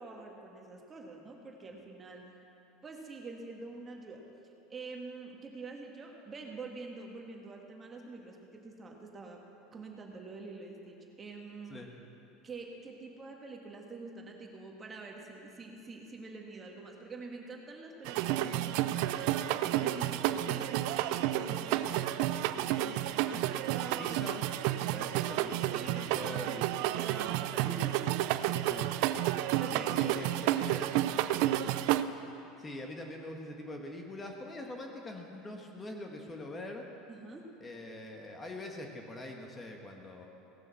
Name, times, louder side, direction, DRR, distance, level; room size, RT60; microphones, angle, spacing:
voice 1, 0.0-2.3 2.8-4.2 4.7-9.4 9.7-11.8 12.4-24.2 25.7-26.5 26.8-28.1 29.6-30.2 37.1-37.5, right 3 dB, 25° right, 1 dB, 1.7 m, -46 dB
sound 1, 18.0-32.0, right 13 dB, 70° right, 0.4 m, -31 dB
voice 2, 24.0-24.4 24.9-26.6 28.6-31.0 32.6-36.9 37.6-40.3, left 1 dB, 20° left, 2 dB, 1.5 m, -44 dB
17.0 x 7.0 x 7.0 m, 2.9 s
supercardioid pair, 105°, 0 cm